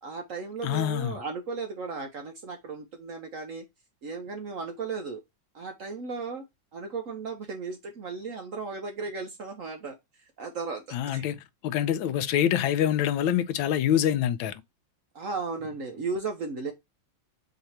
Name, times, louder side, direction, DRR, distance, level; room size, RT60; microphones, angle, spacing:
voice 1, 0.0-3.6 4.0-5.2 5.5-6.4 6.7-11.2 15.1-16.7, right 4 dB, 60° right, 0.9 m, -35 dB
voice 2, 0.6-1.2 10.9-14.6, left 10 dB, 90° left, 1.3 m, -26 dB
4.0 x 2.8 x 4.3 m
omnidirectional pair, 2.1 m